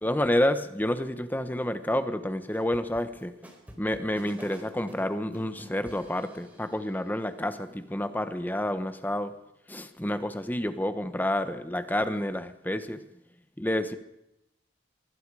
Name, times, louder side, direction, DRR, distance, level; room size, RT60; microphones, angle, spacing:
voice 1, 0.0-3.3 3.8-9.3 9.7-13.0 13.6-13.9, left 1 dB, 10° left, 10 dB, 1.3 m, -29 dB
sound 1, 2.5-6.8, equal, 10° right, 4.6 m, -48 dB
24.5 x 23.0 x 4.9 m, 0.85 s
head